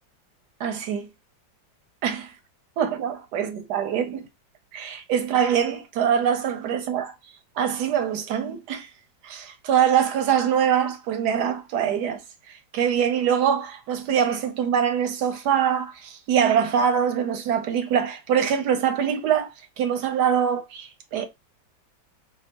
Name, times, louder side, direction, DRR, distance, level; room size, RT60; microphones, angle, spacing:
voice 1, 0.6-1.1 2.0-2.3 2.8-4.2 4.7-7.1 7.5-8.9 9.2-12.2 12.5-21.3, right 8 dB, 75° right, 1.0 m, -24 dB
5.1 x 2.3 x 2.8 m
omnidirectional pair, 2.1 m